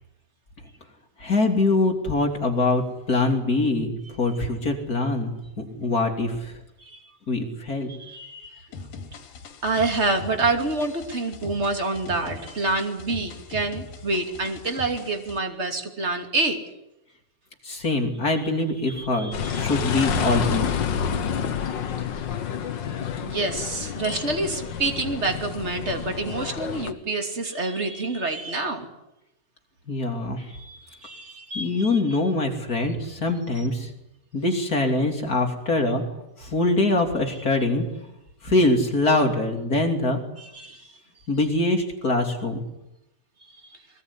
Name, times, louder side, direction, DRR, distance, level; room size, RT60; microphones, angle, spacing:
voice 1, 1.2-6.6 7.3-8.0 17.6-20.7 29.9-30.5 31.5-33.9 34.3-36.0 36.4-37.8 38.4-40.2 41.3-42.6, left 2 dB, 25° left, 3 dB, 3.3 m, -23 dB
voice 2, 7.9-8.7 9.6-16.6 19.0-19.6 23.2-28.9 30.5-31.9 40.4-40.9 43.4-43.5, right 3 dB, 20° right, 5 dB, 2.6 m, -27 dB
sound 1, 8.7-15.4, left 4 dB, 85° left, 4.1 m, -41 dB
sound 2, 19.3-26.9, left 7 dB, 65° left, 1.1 m, -29 dB
22.0 x 21.5 x 9.9 m, 0.88 s
omnidirectional pair, 4.0 m